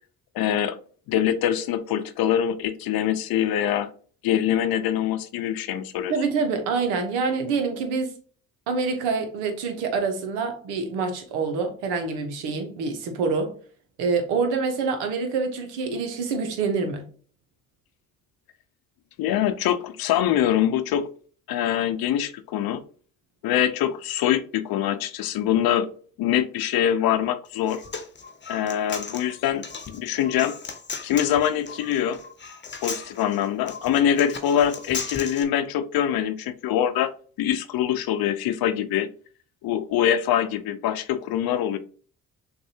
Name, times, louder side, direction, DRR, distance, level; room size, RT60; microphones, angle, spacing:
voice 1, 0.3-0.8 1.1-3.9 4.2-6.1 19.2-21.1 21.5-22.8 23.4-25.9 26.2-27.8 28.5-30.6 31.0-32.2 32.8-37.1 37.4-39.1 39.6-41.8, left 10 dB, 65° left, 0.7 m, -24 dB
voice 2, 6.1-8.1 8.7-13.5 14.0-17.1, right 4 dB, 85° right, 1.1 m, -26 dB
Human voice, 27.5-35.4, left 5 dB, 30° left, 0.9 m, -36 dB
6.4 x 2.6 x 2.8 m
hypercardioid pair, 50°, 39 cm